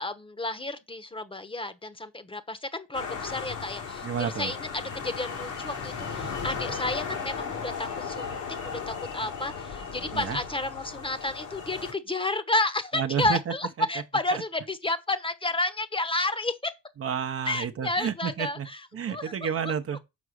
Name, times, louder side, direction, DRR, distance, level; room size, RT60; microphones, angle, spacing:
voice 1, 0.0-16.7 17.4-19.7, left 2 dB, 15° left, 1.0 m, -31 dB
sound 1, 2.9-11.9, left 5 dB, 85° left, 3.0 m, -36 dB
voice 2, 4.0-4.5 10.1-10.4 12.9-13.4 13.8-13.9 14.3-14.4 17.0-18.7 18.9-20.0, right 8 dB, 50° right, 0.9 m, -30 dB
6.1 x 4.7 x 6.4 m
cardioid pair, 90°, 30 cm